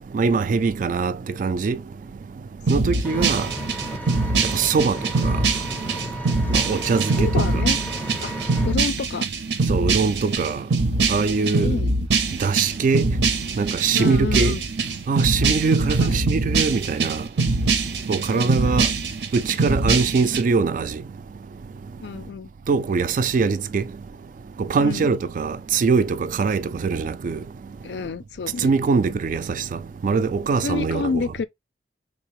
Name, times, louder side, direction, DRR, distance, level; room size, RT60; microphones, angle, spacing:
voice 1, 0.1-1.8 2.7-3.5 4.5-5.4 6.5-7.3 9.7-10.6 11.1-11.8 12.4-13.0 13.6-14.5 15.1-17.2 18.1-18.9 19.3-21.0 22.7-23.8 24.6-27.4 28.6-29.6 30.0-31.2, right 4 dB, 45° right, 0.3 m, -22 dB
voice 2, 2.7-3.3 7.2-7.8 8.2-8.3 8.6-9.3 11.5-12.0 13.9-14.6 15.8-16.2 18.3-18.8 22.0-22.5 24.8-25.1 27.8-28.7 30.6-31.5, left 5 dB, 70° left, 0.4 m, -29 dB
sound 1, 2.7-20.4, right 3 dB, 80° right, 0.6 m, -23 dB
Vehicle, 3.0-8.7, right 1 dB, 10° left, 0.5 m, -34 dB
3.8 x 2.8 x 3.0 m
head